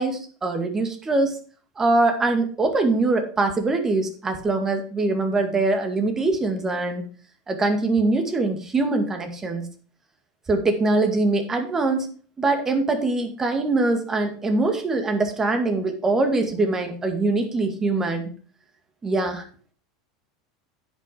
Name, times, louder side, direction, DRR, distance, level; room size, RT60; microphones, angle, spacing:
voice 1, 0.0-1.3 1.8-7.1 7.5-9.7 10.5-12.1 12.4-18.3 19.0-19.4, right 2 dB, 20° right, 6 dB, 2.1 m, -23 dB
10.0 x 6.0 x 5.0 m, 0.40 s
hypercardioid pair, 100°, 2 cm